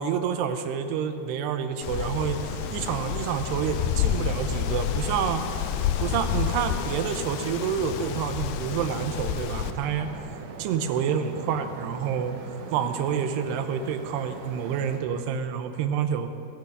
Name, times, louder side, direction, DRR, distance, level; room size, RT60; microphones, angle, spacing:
voice 1, 0.0-2.4 2.7-5.7 6.0-10.1 10.6-12.4 12.7-16.3, right 7 dB, 85° right, 8 dB, 2.9 m, -28 dB
Wind, 1.8-9.7, left 9 dB, 85° left, 2.7 m, -29 dB
Tick-tock, 2.0-2.1 3.0-3.3 4.0-4.2 5.0-5.1 5.4-5.5 6.0-6.1 7.0-7.1 8.0-8.1 9.0-9.1 10.0-10.1 11.0-11.1, left 2 dB, 60° left, 4.4 m, -47 dB
sound 1, 2.4-15.0, right 4 dB, 65° right, 2.3 m, -43 dB
21.0 x 9.8 x 5.3 m, 2.7 s
omnidirectional pair, 4.7 m